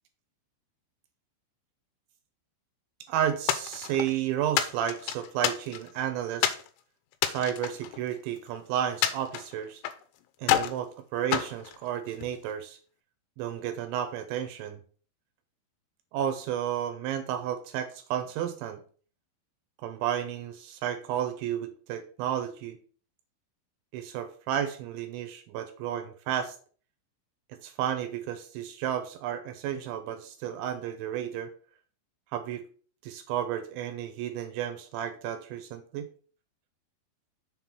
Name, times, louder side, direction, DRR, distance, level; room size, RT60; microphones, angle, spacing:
voice 1, 3.1-6.5 7.2-9.8 10.4-12.8 13.4-14.8 16.1-18.8 19.8-22.8 23.9-26.6 27.6-31.5 32.3-32.6 33.0-36.1, right 10 dB, 80° right, 8 dB, 2.9 m, -32 dB
sound 1, 3.5-4.1 4.6-6.0 6.4-6.7 7.1-8.5 9.0-10.0 10.4-10.8 11.3-12.4, left 11 dB, 85° left, 2.4 m, -29 dB
7.2 x 3.9 x 5.9 m, 0.43 s
omnidirectional pair, 5.7 m